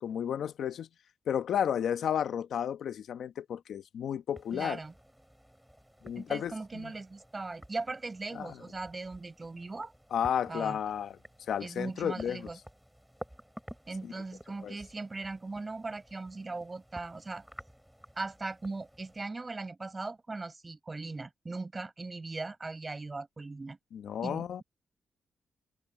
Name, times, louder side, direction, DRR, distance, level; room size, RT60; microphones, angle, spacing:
voice 1, 0.0-0.9 1.3-4.8 6.0-6.9 8.3-8.5 10.1-11.2 11.5-12.4 14.6-14.7 23.9-24.6, left 9 dB, 80° left, 1.0 m, -32 dB
sound 1, 4.3-19.2, equal, 5° right, 7.5 m, -53 dB
voice 2, 4.5-4.9 6.1-9.9 10.5-10.8 11.6-12.6 13.9-17.4 18.2-23.8 24.2-24.6, right 3 dB, 25° right, 6.5 m, -39 dB
cardioid pair, 100°, 0 cm